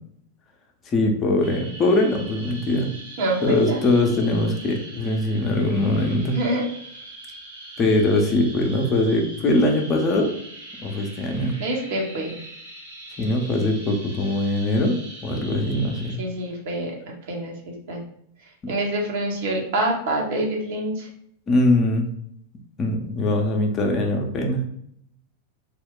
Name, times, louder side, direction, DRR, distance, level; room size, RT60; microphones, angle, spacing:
voice 1, 0.9-2.9 3.4-6.4 7.8-10.3 10.8-11.6 13.2-16.2 18.6-18.7 21.5-22.1 22.8-24.6, left 1 dB, 25° left, 2 dB, 0.5 m, -22 dB
sound 1, 1.4-16.2, right 2 dB, 70° right, 1.3 m, -42 dB
voice 2, 3.2-3.8 6.3-6.6 11.6-12.4 16.2-16.9 17.3-18.0 18.7-21.1, right 1 dB, 50° right, -1 dB, 0.8 m, -26 dB
2.4 x 2.1 x 3.6 m, 0.68 s
figure-of-eight pair, 90°, 0 cm